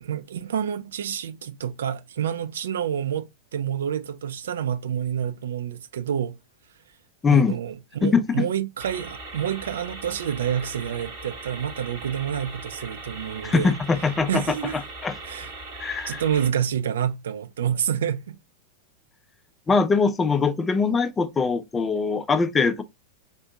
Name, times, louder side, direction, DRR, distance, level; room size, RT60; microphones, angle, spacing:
voice 1, 0.0-3.3 3.5-6.4 7.3-13.8 14.3-14.7 15.2-15.5 16.1-18.4, right 9 dB, 60° right, 0.3 m, -28 dB
voice 2, 7.2-7.6 8.0-8.4 13.4-14.4 14.7-15.2 15.8-16.2 19.7-22.8, left 5 dB, 15° left, 0.4 m, -22 dB
sound 1, 8.8-16.5, right 2 dB, 45° right, 1.8 m, -39 dB
3.6 x 2.5 x 2.4 m
figure-of-eight pair, 90°, 0 cm